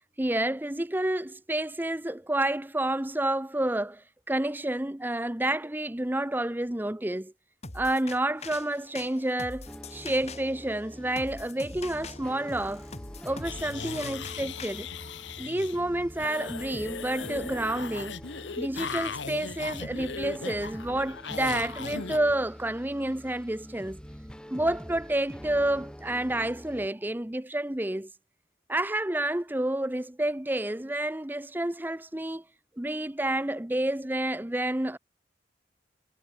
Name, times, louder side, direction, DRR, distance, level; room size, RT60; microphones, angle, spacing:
voice 1, 0.2-7.3 7.7-12.9 13.2-14.9 15.4-18.2 18.6-24.0 24.5-28.1 28.7-32.4 32.8-35.0, right 1 dB, 10° right, 0.7 m, -29 dB
sound 1, 7.6-14.7, left 3 dB, 35° left, 2.4 m, -44 dB
sound 2, 9.7-26.9, equal, 5° left, 3.3 m, -45 dB
sound 3, 13.4-15.8 16.1-22.2, left 5 dB, 80° left, 1.3 m, -38 dB
head